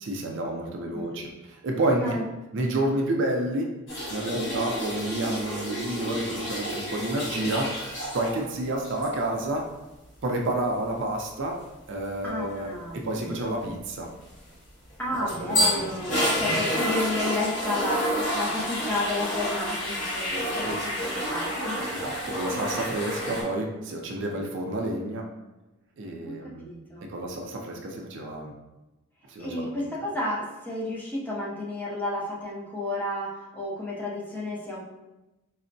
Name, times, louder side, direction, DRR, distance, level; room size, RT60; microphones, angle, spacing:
voice 1, 0.0-2.2 2.5-3.7 4.1-7.8 8.1-9.6 10.2-11.6 11.9-14.1 15.4-16.1 20.3-20.8 21.9-25.3 26.0-26.7 27.1-28.5 29.3-29.7, right 1 dB, 55° right, 1 dB, 0.4 m, -30 dB
voice 2, 0.9-1.3 2.0-2.2 4.3-4.6 12.2-13.3 13.6-13.7 15.0-21.8 26.2-27.1 29.4-34.8, left 2 dB, 10° left, -5 dB, 0.5 m, -32 dB
sound 1, 3.9-8.4 8.8-9.1 14.9-23.4, equal, 55° left, 1.5 m, -29 dB
4.2 x 2.0 x 2.6 m, 1.0 s
head